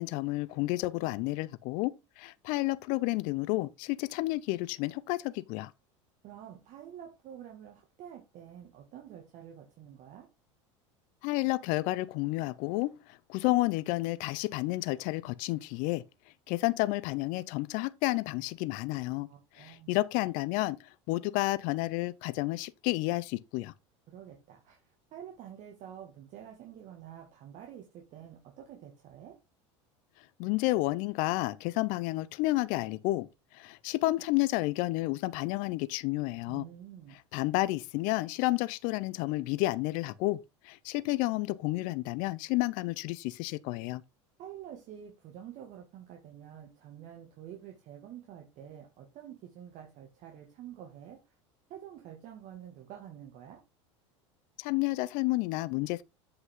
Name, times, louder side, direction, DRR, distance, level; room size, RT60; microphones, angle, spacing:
voice 1, 0.0-1.9 2.2-5.7 11.2-16.0 16.5-19.3 19.5-23.7 30.4-33.3 33.5-36.6 37.3-40.4 40.6-44.0 54.6-56.0, left 19 dB, 60° left, 0.6 m, -31 dB
voice 2, 6.2-10.3 19.3-20.0 24.1-29.4 36.5-37.2 44.4-51.4 51.7-53.6, right 10 dB, 55° right, 2.0 m, -48 dB
8.0 x 5.6 x 3.8 m
hypercardioid pair, 90°, 16 cm